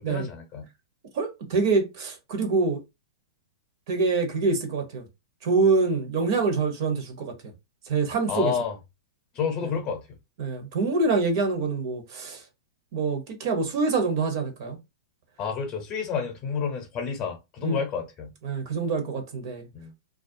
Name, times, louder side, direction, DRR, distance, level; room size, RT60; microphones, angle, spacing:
voice 1, 0.1-0.6 8.3-8.7 9.3-10.0 15.4-18.3 19.7-19.9, left 6 dB, 30° left, 0.7 m, -29 dB
voice 2, 1.1-2.8 3.9-5.0 5.4-7.3 7.9-8.5 9.6-9.7 10.4-12.4 12.9-14.8 17.6-17.8 18.4-19.7, right 4 dB, 50° right, 0.8 m, -25 dB
2.3 x 2.0 x 2.6 m
hypercardioid pair, 150°, 3 cm